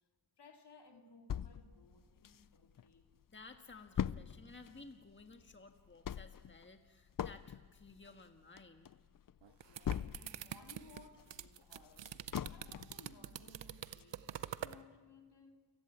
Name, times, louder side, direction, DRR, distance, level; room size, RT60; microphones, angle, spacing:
voice 1, 0.4-3.1 9.5-12.2 12.5-15.6, left 4 dB, 65° left, 2.4 m, -61 dB
sound 1, 1.3-2.8 3.2-3.3 3.5-10.5 10.9-13.0 13.5-13.6 14.0-14.1, left 9 dB, 50° left, 0.5 m, -42 dB
voice 2, 3.3-8.9, left 3 dB, 25° left, 1.6 m, -56 dB
sound 2, 9.4-14.8, right 10 dB, 85° right, 0.7 m, -46 dB
29.0 x 11.5 x 8.8 m
cardioid pair, 50°, 43 cm